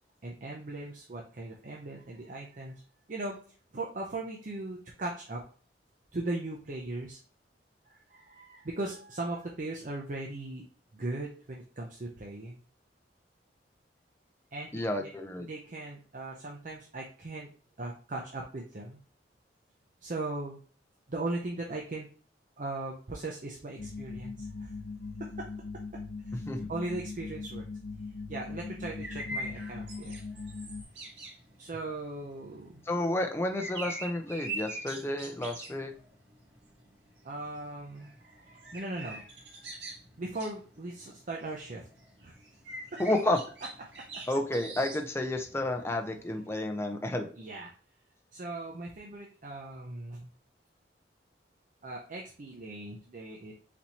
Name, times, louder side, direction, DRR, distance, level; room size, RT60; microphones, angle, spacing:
voice 1, 0.2-2.7 3.1-3.4 3.7-5.4 6.1-7.2 7.9-10.6 10.9-12.6 14.5-15.1 15.4-17.5 17.8-19.0 20.0-20.6 21.1-22.1 22.6-24.7 25.2-25.5 26.3-27.7 28.3-30.1 31.6-32.8 37.2-39.7 40.2-41.9 42.2-42.3 42.7-43.0 47.4-47.7 48.3-50.3 51.8-53.5, right 2 dB, 45° right, 0 dB, 0.6 m, -38 dB
voice 2, 14.7-15.5 26.5-26.7 32.9-35.9 43.0-43.4 44.3-47.3, left 1 dB, 15° left, 4 dB, 0.6 m, -31 dB
sound 1, 23.8-30.8, left 4 dB, 70° left, 0.5 m, -40 dB
sound 2, 28.5-46.5, right 2 dB, 80° right, 1.5 m, -44 dB
4.2 x 3.1 x 4.1 m, 0.41 s
head